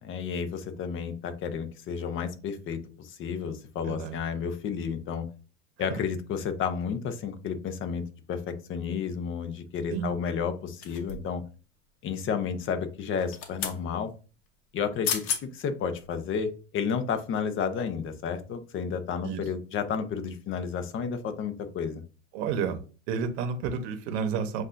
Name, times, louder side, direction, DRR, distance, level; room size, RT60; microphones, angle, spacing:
voice 1, 0.0-5.3 5.8-11.4 12.0-14.1 14.7-22.0, left 6 dB, 35° left, 9 dB, 0.8 m, -32 dB
voice 2, 3.9-4.2 5.9-6.0 9.9-10.1 19.2-19.4 22.3-22.8 23.1-24.6, right 6 dB, 65° right, 7 dB, 1.0 m, -30 dB
sound 1, 10.8-11.4 13.1-13.8 14.8-14.9 15.0-15.4 16.0-16.1, left 7 dB, 60° left, 1.1 m, -32 dB
7.6 x 2.6 x 2.6 m, 0.35 s
supercardioid pair, 125°, 37 cm